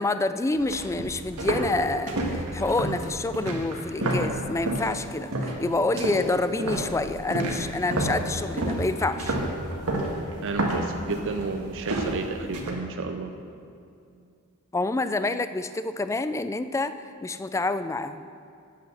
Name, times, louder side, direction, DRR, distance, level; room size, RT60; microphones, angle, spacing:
voice 1, 0.0-9.4 14.7-18.3, left 2 dB, 15° left, 12 dB, 0.3 m, -28 dB
sound 1, 0.5-4.9 5.3-5.6 6.0-12.7, right 1 dB, 85° right, 1.6 m, -29 dB
voice 2, 10.4-13.3, right 3 dB, 60° right, 6 dB, 0.5 m, -32 dB
9.2 x 8.8 x 6.3 m, 2.4 s
head